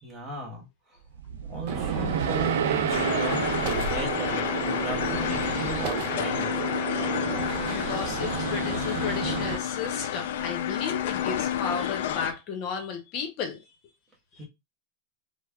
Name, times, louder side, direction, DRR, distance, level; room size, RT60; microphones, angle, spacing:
voice 1, 0.0-1.0 1.4-6.5 14.4-14.5, right 1 dB, 25° right, 1.4 m, -37 dB
sound 1, 1.1-5.5, right 8 dB, 85° right, 0.3 m, -31 dB
Gunshot gunfire, 1.7-9.6, right 7 dB, 60° right, 0.7 m, -32 dB
sound 2, 2.9-12.3, left 10 dB, 70° left, 0.3 m, -30 dB
voice 2, 7.4-13.6 14.4-14.5, left 6 dB, 45° left, 0.7 m, -34 dB
3.3 x 2.0 x 2.3 m
hypercardioid pair, 125°, 0 cm